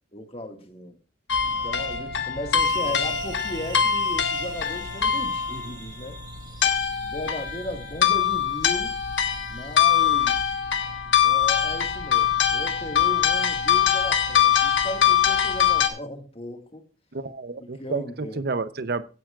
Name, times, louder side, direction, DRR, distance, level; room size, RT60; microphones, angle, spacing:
voice 1, 0.1-1.0 1.5-6.2 7.0-9.0 9.5-10.4 11.2-16.8 17.6-18.4, left 1 dB, 30° left, 1.9 m, -36 dB
sound 1, 1.3-15.9, left 8 dB, 80° left, 1.4 m, -23 dB
sound 2, 2.6-10.1, right 3 dB, 20° right, 1.4 m, -44 dB
voice 2, 17.1-19.0, right 3 dB, 55° right, 0.7 m, -30 dB
16.5 x 9.3 x 2.4 m
head